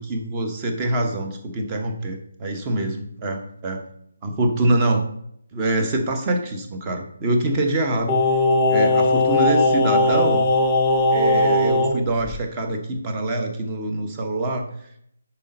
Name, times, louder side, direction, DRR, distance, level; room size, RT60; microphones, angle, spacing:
voice 1, 0.0-3.8 4.2-5.0 5.5-8.1 8.7-10.5 11.1-14.7, right 2 dB, 20° right, 3 dB, 1.1 m, -24 dB
Singing, 8.1-11.9 12.3-12.4, left 2 dB, 15° left, 1.1 m, -18 dB
10.5 x 4.4 x 2.7 m, 0.71 s
figure-of-eight pair, 145°, 0 cm